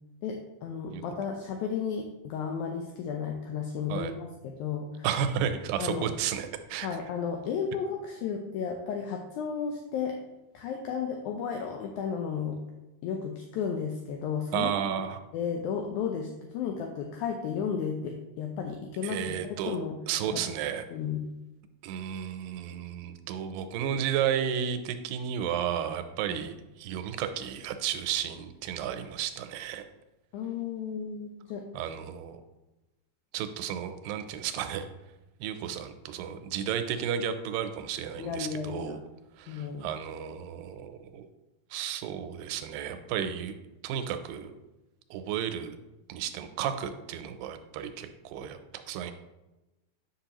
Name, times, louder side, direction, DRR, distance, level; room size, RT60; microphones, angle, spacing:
voice 1, 0.2-5.1 5.8-6.1 6.8-10.2 10.5-12.6 13.0-14.7 15.3-20.0 20.3-20.4 20.9-21.3 26.3-26.5 30.3-31.6 38.2-39.0 39.5-39.9, left 6 dB, 80° left, 3 dB, 1.8 m, -33 dB
voice 2, 5.0-7.0 14.5-15.2 19.0-19.8 20.1-20.8 21.8-29.8 31.7-32.4 33.3-34.9 35.4-39.0 39.4-41.3 41.7-43.6 43.8-44.5 45.1-45.8 46.1-49.1, right 9 dB, 90° right, 9 dB, 2.3 m, -33 dB
8.6 x 5.7 x 2.9 m, 1.0 s
omnidirectional pair, 3.9 m